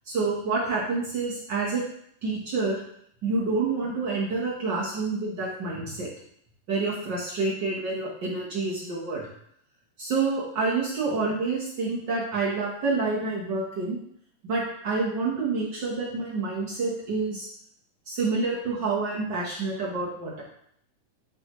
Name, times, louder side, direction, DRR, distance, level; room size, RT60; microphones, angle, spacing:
voice 1, 0.1-1.8 2.2-2.8 3.2-6.1 6.7-9.3 10.0-14.0 14.4-17.5 18.1-20.4, right 3 dB, 60° right, -5 dB, 1.1 m, -28 dB
10.5 x 3.6 x 3.0 m, 0.69 s
omnidirectional pair, 3.6 m